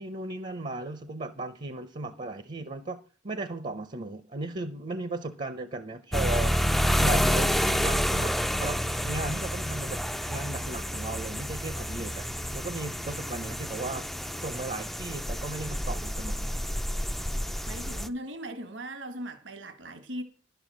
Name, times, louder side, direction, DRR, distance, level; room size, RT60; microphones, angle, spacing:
voice 1, 0.0-3.0 3.2-10.0 10.3-12.2 12.5-14.0 14.4-16.5, right 2 dB, 40° right, 0.7 m, -36 dB
sound 1, 6.1-18.1, equal, ahead, 0.4 m, -29 dB
voice 2, 17.7-20.2, right 1 dB, 70° right, 1.4 m, -38 dB
11.0 x 7.0 x 6.2 m
head